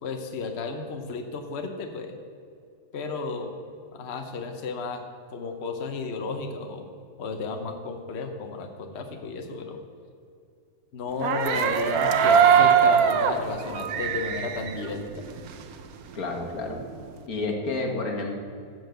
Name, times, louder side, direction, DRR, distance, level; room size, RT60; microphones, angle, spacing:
voice 1, 0.0-2.2 2.9-3.5 3.9-5.0 5.3-6.9 7.2-9.8 10.9-15.2, left 4 dB, 55° left, 4 dB, 1.0 m, -33 dB
sound 1, 11.1-15.8 16.1-17.2, right 7 dB, 85° right, 1.2 m, -22 dB
voice 2, 16.1-16.8 17.3-18.3, left 3 dB, 85° left, 2 dB, 1.8 m, -29 dB
13.0 x 4.5 x 7.7 m, 2.4 s
omnidirectional pair, 1.5 m